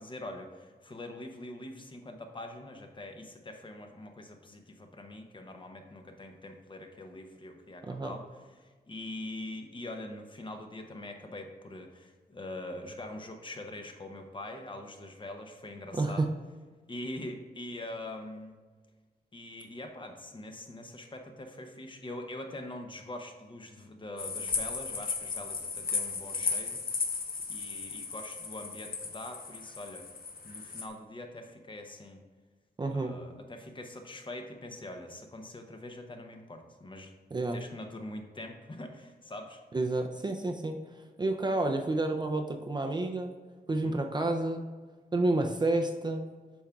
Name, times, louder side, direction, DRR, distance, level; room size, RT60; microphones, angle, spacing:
voice 1, 0.0-8.3 8.6-16.3 16.9-18.6 19.3-26.8 27.5-30.1 30.4-32.2 32.9-37.1 37.5-39.6 43.7-44.0, left 1 dB, 30° left, 4 dB, 0.6 m, -43 dB
voice 2, 7.8-8.1 16.0-16.3 32.8-33.2 37.3-37.6 39.7-40.8 41.2-43.3 43.7-44.6 45.1-46.2, right 2 dB, 25° right, 3 dB, 0.4 m, -29 dB
sound 1, 24.2-30.9, left 4 dB, 60° left, 0.7 m, -35 dB
8.5 x 5.7 x 2.3 m, 1.4 s
wide cardioid pair, 165°, 17 cm